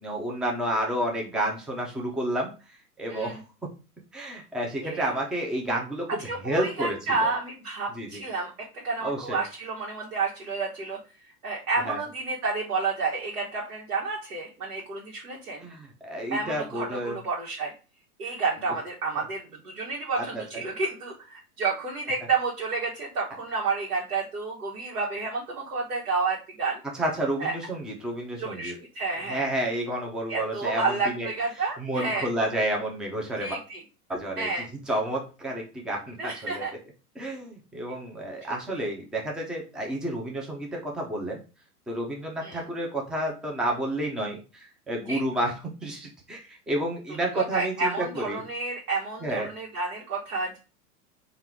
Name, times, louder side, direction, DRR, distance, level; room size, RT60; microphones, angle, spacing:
voice 1, 0.0-2.5 3.0-3.4 4.1-7.3 8.0-8.2 9.0-9.4 11.9-12.0 15.6-17.2 20.2-20.4 26.9-28.7 29.3-31.3 31.6-33.6 34.1-34.5 34.9-36.6 37.2-41.4 41.9-48.4 49.2-49.5, right 1 dB, ahead, 0 dB, 0.4 m, -30 dB
voice 2, 3.1-3.4 4.8-5.1 6.2-15.6 16.3-17.7 18.2-26.8 27.4-27.5 28.4-29.5 30.3-32.3 33.4-33.8 34.4-34.7 36.2-36.7 37.9-38.0 42.4-42.6 45.1-45.2 47.3-50.6, right 4 dB, 70° right, -4 dB, 1.2 m, -30 dB
4.2 x 2.4 x 3.6 m, 0.33 s
figure-of-eight pair, 95°, 46 cm